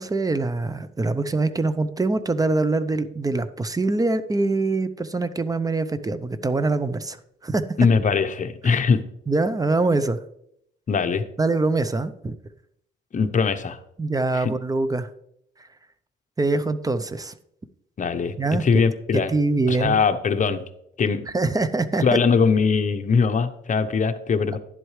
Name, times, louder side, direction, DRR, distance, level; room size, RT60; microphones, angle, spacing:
voice 1, 0.0-7.2 7.4-7.6 8.6-8.7 9.3-10.2 11.4-12.4 14.0-15.1 16.4-17.3 18.4-18.6 19.3-20.0 21.3-22.2, right 3 dB, 20° right, 13 dB, 0.7 m, -24 dB
voice 2, 7.8-9.0 10.9-11.2 13.1-13.8 14.3-14.5 18.0-18.3 18.6-19.3 19.7-20.6 21.0-21.2 22.0-24.6, left 5 dB, 40° left, 8 dB, 0.9 m, -21 dB
11.0 x 7.8 x 3.3 m, 0.73 s
cardioid pair, 90°, 20 cm